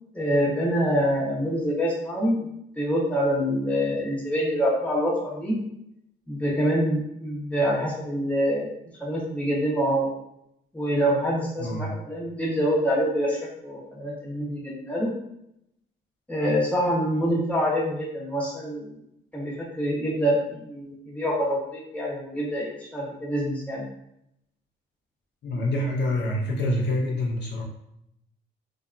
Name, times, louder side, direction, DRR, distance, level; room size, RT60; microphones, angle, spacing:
voice 1, 0.1-2.5 2.8-5.6 6.3-8.7 9.0-10.1 10.7-15.1 16.3-18.9 19.3-23.8, equal, 5° left, -5 dB, 0.9 m, -26 dB
voice 2, 11.6-11.9 25.4-27.6, left 1 dB, 60° left, -1 dB, 0.6 m, -26 dB
2.7 x 2.2 x 2.4 m, 0.78 s
cardioid pair, 90°, 20 cm